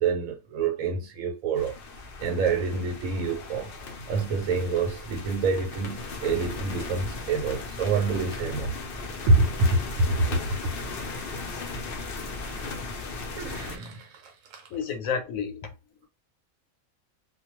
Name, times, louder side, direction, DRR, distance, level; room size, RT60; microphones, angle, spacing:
voice 1, 0.0-1.8 2.2-3.7 4.1-8.8 9.3-10.1 12.6-12.7 13.4-14.7, right 3 dB, 90° right, 1.0 m, -27 dB
sound 1, 1.6-13.8, left 3 dB, 60° left, 0.7 m, -37 dB
voice 2, 14.7-15.7, left 6 dB, 85° left, 1.1 m, -30 dB
2.3 x 2.2 x 2.9 m
omnidirectional pair, 1.4 m